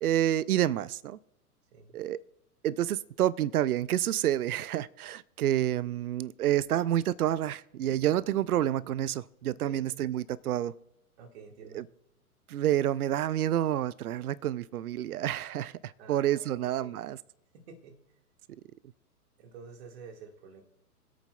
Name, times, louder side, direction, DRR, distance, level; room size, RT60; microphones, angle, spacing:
voice 1, 0.0-1.2 1.9-2.2 2.6-10.7 11.7-11.8 12.5-17.2, right 12 dB, 70° right, 0.5 m, -29 dB
voice 2, 11.2-11.8 16.0-16.9 17.5-17.9 19.4-20.6, right 5 dB, 45° right, 1.8 m, -49 dB
24.5 x 8.5 x 2.3 m
figure-of-eight pair, 110°, 46 cm